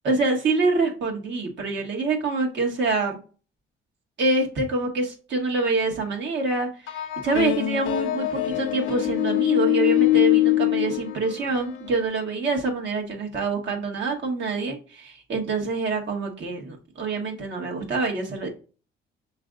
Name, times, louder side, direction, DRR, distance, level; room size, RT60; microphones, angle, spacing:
voice 1, 0.0-3.2 4.2-18.5, right 3 dB, 65° right, 1 dB, 1.5 m, -26 dB
sound 1, 6.9-12.0, left 16 dB, 85° left, 0.6 m, -23 dB
6.3 x 3.2 x 2.5 m, 0.36 s
cardioid pair, 90°, 20 cm